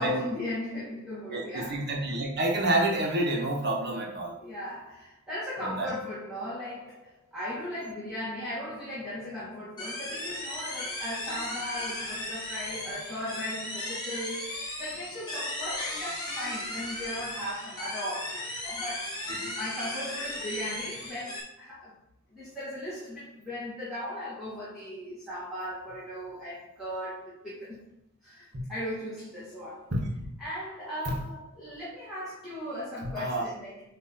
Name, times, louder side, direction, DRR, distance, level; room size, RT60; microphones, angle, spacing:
voice 1, 0.0-1.9 4.4-19.2 19.6-21.9 22.3-27.8 28.2-29.9 30.4-33.8, left 1 dB, ahead, -11 dB, 2.3 m, -37 dB
voice 2, 1.3-4.3 5.6-5.9 19.4-19.5 29.9-30.1 33.1-33.5, right 1 dB, 50° right, -1 dB, 1.7 m, -28 dB
sound 1, 9.8-21.4, left 1 dB, 20° left, 2.3 m, -36 dB
8.8 x 3.3 x 4.4 m, 0.77 s
head